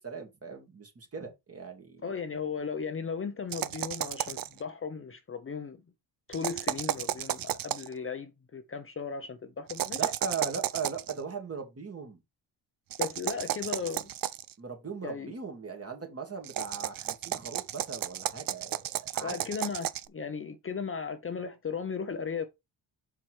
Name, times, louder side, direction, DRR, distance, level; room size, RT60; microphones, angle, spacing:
voice 1, 0.0-2.0 9.9-12.2 14.6-19.3, right 5 dB, 30° right, 2.3 m, -39 dB
voice 2, 2.0-5.8 6.3-10.1 13.0-14.1 15.0-15.3 19.2-22.5, left 5 dB, 30° left, 0.7 m, -36 dB
sound 1, 3.5-4.6 6.3-7.9 9.7-11.1 12.9-14.5 16.4-20.1, right 12 dB, 50° right, 0.6 m, -33 dB
6.0 x 4.4 x 4.7 m
cardioid pair, 95°, 44 cm